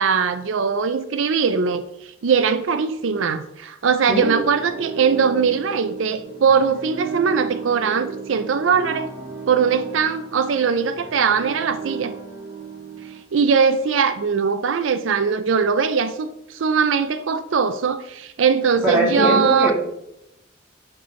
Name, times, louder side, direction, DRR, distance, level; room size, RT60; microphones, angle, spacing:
voice 1, 0.0-9.1 9.5-12.1 13.3-19.7, right 6 dB, 90° right, 0.4 m, -20 dB
sound 1, 4.3-13.2, right 5 dB, 55° right, 1.4 m, -34 dB
voice 2, 18.8-19.7, right 1 dB, 10° right, 2.4 m, -20 dB
10.0 x 4.4 x 3.1 m
head